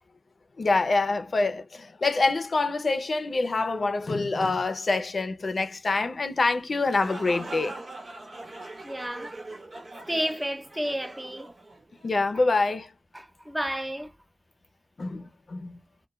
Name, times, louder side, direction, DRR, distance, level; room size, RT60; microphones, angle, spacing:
voice 1, 0.6-7.8 12.0-12.9 15.0-15.8, left 3 dB, 85° left, 0.4 m, -26 dB
sound 1, 6.7-12.4, right 2 dB, 75° right, 1.0 m, -42 dB
voice 2, 8.8-9.3 10.1-11.5 12.3-12.4 13.1-14.1, equal, 15° right, 0.7 m, -31 dB
2.2 x 2.1 x 3.0 m
wide cardioid pair, 60°, 0 cm